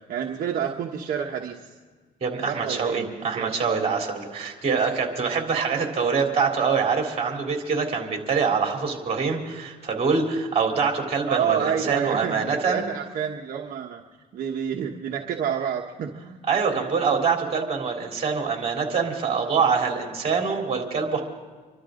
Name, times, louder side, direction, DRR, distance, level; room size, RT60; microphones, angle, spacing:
voice 1, 0.1-1.7 2.5-3.5 11.2-14.0 14.3-16.4, right 8 dB, 55° right, 1 dB, 1.3 m, -29 dB
voice 2, 2.2-12.8 16.5-21.2, right 5 dB, 35° right, 1 dB, 3.5 m, -25 dB
27.0 x 12.5 x 3.8 m, 1.5 s
cardioid pair, 110°, 17 cm